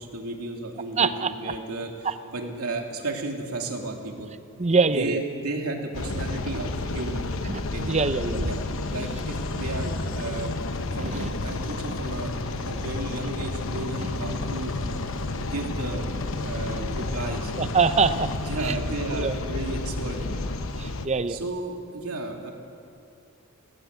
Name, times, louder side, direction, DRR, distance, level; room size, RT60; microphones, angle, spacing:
voice 1, 0.0-4.3 4.9-7.3 7.7-8.0 8.3-8.6 8.9-10.6 10.9-12.3 12.6-14.7 15.3-16.0 16.4-17.5 18.4-20.5 21.3-22.5, right 2 dB, 85° right, 1 dB, 2.7 m, -33 dB
voice 2, 1.0-1.3 2.0-2.1 4.6-5.2 7.5-7.6 7.9-8.4 11.1-11.3 17.6-18.3 18.6-18.7 19.1-19.3 20.8-21.4, right 4 dB, 30° right, 12 dB, 0.7 m, -23 dB
sound 1, 5.9-21.1, left 2 dB, 65° left, 1.0 m, -31 dB
19.5 x 17.0 x 8.3 m, 2.5 s
head